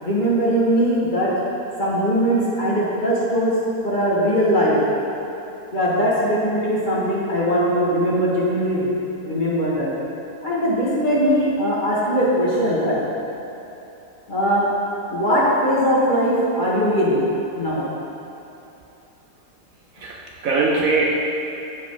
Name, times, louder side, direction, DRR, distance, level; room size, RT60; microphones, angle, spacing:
voice 1, 0.0-1.3 1.8-3.5 3.8-4.8 5.7-8.9 9.2-9.9 10.4-13.0 14.3-14.7 15.1-17.2 17.6-17.8, equal, 30° left, -7 dB, 1.8 m, -20 dB
voice 2, 20.0-21.0, right 3 dB, 65° right, -1 dB, 1.0 m, -21 dB
14.0 x 4.9 x 3.9 m, 2.9 s
omnidirectional pair, 1.8 m